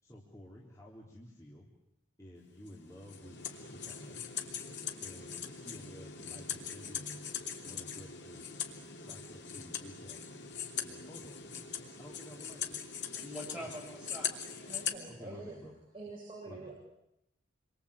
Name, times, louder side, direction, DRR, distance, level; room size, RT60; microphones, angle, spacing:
voice 1, 0.0-1.7 2.2-4.3 5.0-7.0 7.6-8.6 8.9-10.4 10.7-11.5 12.0-12.8 13.5-13.7 15.0-15.8 16.5-16.7, left 1 dB, 15° left, -4 dB, 3.8 m, -52 dB
sound 1, 2.6-14.9, left 7 dB, 60° left, 3.2 m, -41 dB
voice 2, 13.0-15.4, equal, 5° right, -2 dB, 6.7 m, -46 dB
voice 3, 14.7-15.6 15.9-16.7, right 3 dB, 30° right, -3 dB, 7.7 m, -46 dB
29.5 x 24.0 x 8.6 m, 0.83 s
head